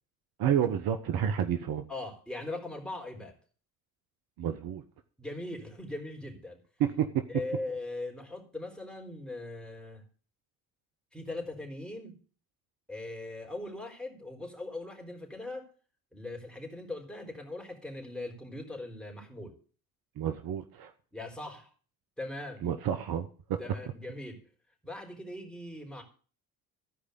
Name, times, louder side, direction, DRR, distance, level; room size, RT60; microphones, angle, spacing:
voice 1, 0.4-1.8 4.4-4.8 6.8-7.2 20.2-20.9 22.6-23.6, right 9 dB, 55° right, 8 dB, 1.1 m, -30 dB
voice 2, 1.9-3.4 5.2-6.6 7.3-10.0 11.1-12.2 12.9-15.7 16.1-19.5 21.1-21.7 22.2-22.6 23.6-24.4 24.8-26.0, left 2 dB, ahead, 0 dB, 3.8 m, -40 dB
14.5 x 4.9 x 8.2 m, 0.41 s
hypercardioid pair, 55°, 43 cm